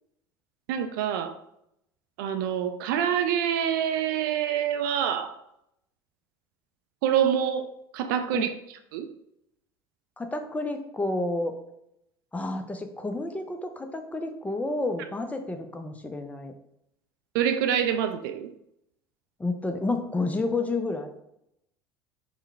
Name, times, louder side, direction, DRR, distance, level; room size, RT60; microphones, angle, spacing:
voice 1, 0.7-1.3 2.2-5.3 7.0-8.5 8.9-9.1 17.3-18.5, right 9 dB, 60° right, 9 dB, 0.4 m, -26 dB
voice 2, 10.2-11.6 12.3-16.5 19.4-21.1, left 2 dB, 10° left, 6 dB, 0.5 m, -30 dB
4.6 x 2.1 x 3.4 m, 0.78 s
figure-of-eight pair, 70°, 13 cm